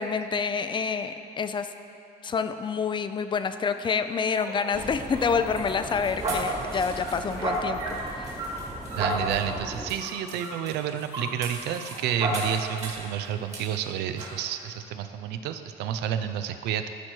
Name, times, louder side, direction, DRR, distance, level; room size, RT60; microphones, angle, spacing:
voice 1, 0.0-1.7 2.2-7.8 8.1-8.4, left 5 dB, 30° left, 10 dB, 0.4 m, -28 dB
sound 1, 4.4-13.1 13.5-13.6 14.2-14.4, right 1 dB, 40° right, 2.0 m, -33 dB
sound 2, 4.7-9.9, right 1 dB, 10° right, 1.0 m, -39 dB
voice 2, 9.0-16.9, right 9 dB, 80° right, 9 dB, 0.5 m, -30 dB
12.5 x 4.5 x 4.4 m, 2.6 s
cardioid pair, 110°, 17 cm